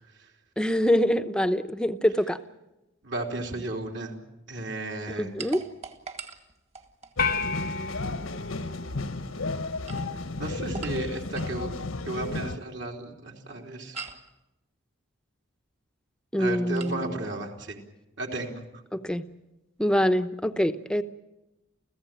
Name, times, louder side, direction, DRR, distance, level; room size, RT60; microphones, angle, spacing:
voice 1, 0.6-2.4 5.2-5.6 16.3-17.2 18.9-19.2 19.8-21.0, equal, 5° left, 10 dB, 0.8 m, -25 dB
voice 2, 3.0-4.2 4.5-5.3 10.4-11.7 12.0-14.0 16.4-17.8 18.2-18.6, right 2 dB, 60° right, 2 dB, 3.5 m, -34 dB
sound 1, 5.4-7.2 9.6-11.6 13.9-14.3 16.8-17.0, right 4 dB, 30° right, 2.0 m, -42 dB
sound 2, 7.2-12.6, left 3 dB, 85° left, 1.3 m, -33 dB
sound 3, 7.2-9.7, left 5 dB, 45° left, 0.9 m, -32 dB
30.0 x 15.5 x 9.2 m, 0.98 s
head